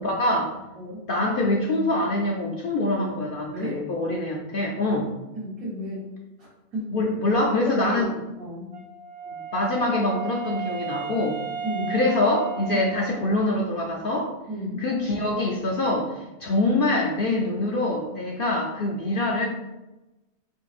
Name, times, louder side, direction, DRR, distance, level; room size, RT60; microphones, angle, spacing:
voice 1, 0.0-0.6 1.1-5.1 6.9-8.1 9.3-11.4 11.9-14.3 14.8-19.4, left 2 dB, 65° left, -1 dB, 0.5 m, -24 dB
voice 2, 3.5-3.9 5.3-6.1 6.4-6.9 7.6-8.1 8.4-8.7 11.6-12.0 12.7-12.9 14.5-14.8, equal, 85° right, -7 dB, 1.6 m, -33 dB
Wind instrument woodwind instrument, 8.7-13.5, right 6 dB, 5° right, 1.3 m, -34 dB
4.5 x 3.8 x 2.4 m, 1.0 s
omnidirectional pair, 1.5 m